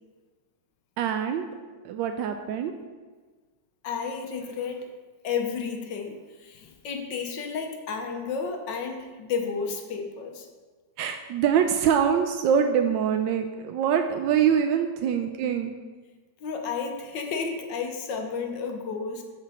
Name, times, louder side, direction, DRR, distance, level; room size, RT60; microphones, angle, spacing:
voice 1, 1.0-1.5 1.8-2.7 11.0-15.7, right 8 dB, 85° right, 6 dB, 1.3 m, -24 dB
voice 2, 3.8-4.9 5.2-10.5 15.0-15.2 16.4-19.2, left 5 dB, 75° left, 4 dB, 1.5 m, -32 dB
13.0 x 5.0 x 4.2 m, 1.4 s
omnidirectional pair, 2.0 m